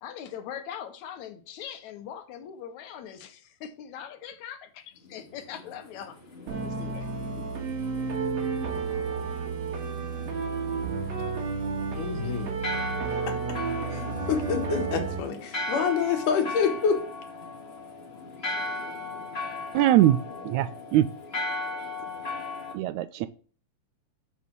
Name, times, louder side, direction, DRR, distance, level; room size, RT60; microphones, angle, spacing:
voice 1, 0.0-6.2 6.5-7.3, left 9 dB, 70° left, 2.3 m, -41 dB
sound 1, 5.0-22.7, left 2 dB, 25° left, 1.7 m, -38 dB
sound 2, 6.5-15.2, right 5 dB, 60° right, 2.7 m, -31 dB
voice 2, 12.0-12.6 13.3-13.4 13.9-17.0, left 6 dB, 85° left, 3.0 m, -27 dB
voice 3, 19.7-20.2 20.4-21.1 22.7-23.3, right 13 dB, 80° right, 1.8 m, -22 dB
7.0 x 6.3 x 6.1 m
omnidirectional pair, 3.5 m